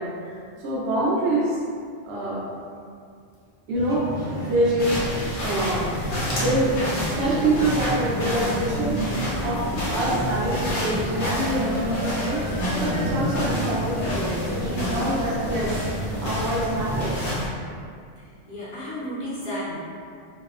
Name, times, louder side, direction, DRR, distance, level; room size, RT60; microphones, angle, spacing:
voice 1, 0.0-1.6 2.0-2.5 3.7-4.9 5.4-5.9 6.4-6.8 7.2-15.8 16.2-17.3, right 1 dB, 70° right, -6 dB, 0.8 m, -26 dB
sound 1, 3.7-17.4, equal, 5° left, 0.5 m, -30 dB
sound 2, 4.8-17.5, left 1 dB, 90° left, 1.0 m, -31 dB
sound 3, 9.0-16.3, equal, 40° left, 0.7 m, -37 dB
voice 2, 18.5-19.8, equal, 65° left, -9 dB, 1.0 m, -32 dB
2.7 x 2.0 x 2.3 m, 2.3 s
omnidirectional pair, 1.1 m